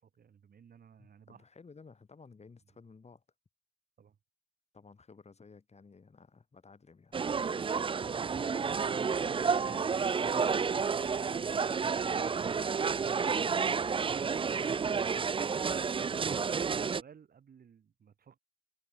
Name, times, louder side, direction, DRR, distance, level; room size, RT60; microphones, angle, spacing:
voice 1, 0.0-1.5 4.0-4.2 11.3-12.6 15.7-18.4, right 7 dB, 75° right, 6.9 m, -57 dB
voice 2, 1.0-3.2 4.7-7.7 8.4-10.7 13.0-15.0 16.4-16.6, left 4 dB, 45° left, 7.2 m, -55 dB
sound 1, 7.1-17.0, right 5 dB, 35° right, 0.4 m, -30 dB
wide cardioid pair, 95°, 15 cm